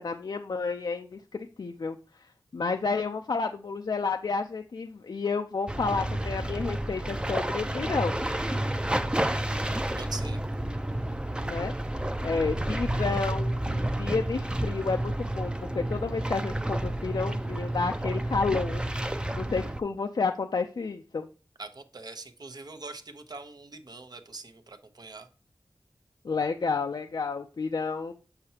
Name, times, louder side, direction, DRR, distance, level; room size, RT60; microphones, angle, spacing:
voice 1, 0.0-2.3 2.5-8.2 11.4-11.7 12.2-18.8 19.3-21.3 26.2-28.1, left 4 dB, 65° left, 5 dB, 0.4 m, -31 dB
sound 1, 5.7-19.8, right 1 dB, 10° right, 0.5 m, -30 dB
voice 2, 9.6-10.4 21.6-25.3, right 3 dB, 60° right, 8 dB, 0.8 m, -43 dB
6.8 x 5.6 x 2.8 m, 0.36 s
cardioid pair, 40°, 8 cm